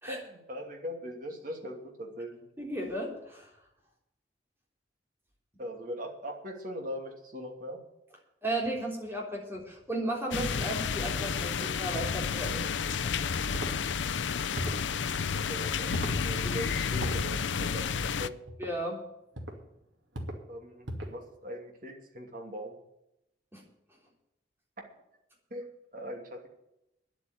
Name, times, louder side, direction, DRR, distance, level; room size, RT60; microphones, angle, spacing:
voice 1, 0.1-2.4 5.6-7.8 15.3-15.9 16.2-18.3 20.5-22.8 25.5-25.7 25.9-26.5, equal, 45° right, 2 dB, 2.8 m, -40 dB
voice 2, 2.6-3.5 8.4-13.4 18.6-19.0 23.5-23.6, right 1 dB, 10° right, -1 dB, 3.4 m, -35 dB
sound 1, 10.3-18.3, left 6 dB, 80° left, 0.5 m, -31 dB
sound 2, 13.5-13.8 14.5-14.9 15.9-16.2 17.0-17.2 18.5-18.7 19.3-19.6 20.1-20.4 20.8-21.2, equal, 85° right, 2.4 m, -36 dB
10.0 x 8.3 x 9.9 m, 0.85 s
head